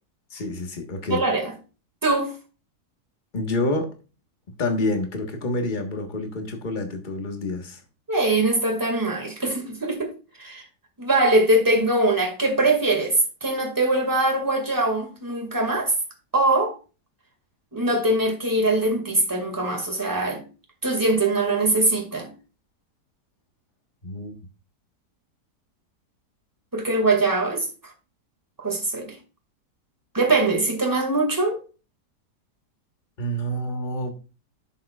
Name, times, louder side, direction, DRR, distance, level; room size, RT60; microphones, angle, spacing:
voice 1, 0.3-1.2 3.3-3.9 4.6-7.8 24.0-24.3 33.2-34.1, left 1 dB, 30° left, 1.4 m, -28 dB
voice 2, 1.1-1.5 2.0-2.3 8.1-10.1 10.4-10.6 11.0-15.9 16.3-16.8 17.7-20.4 20.8-22.3 26.7-27.7 28.6-29.1 30.1-31.6, right 2 dB, 10° right, 2.0 m, -22 dB
10.5 x 7.5 x 2.4 m
omnidirectional pair, 1.8 m